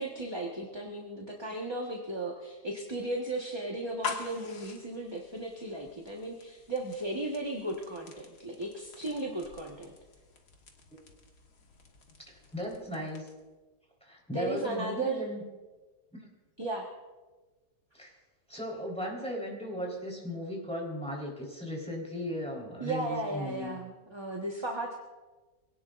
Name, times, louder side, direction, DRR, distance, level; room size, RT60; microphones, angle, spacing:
voice 1, 0.0-9.9 14.3-15.2 16.6-16.9 22.8-25.0, right 2 dB, 15° right, -1 dB, 1.4 m, -35 dB
sound 1, 3.8-13.5, left 5 dB, 70° left, 2.1 m, -46 dB
voice 2, 12.2-13.2 14.0-15.4 17.9-18.1 18.5-23.8, equal, 5° left, -2 dB, 4.1 m, -37 dB
25.0 x 18.0 x 2.6 m, 1.2 s
omnidirectional pair, 1.8 m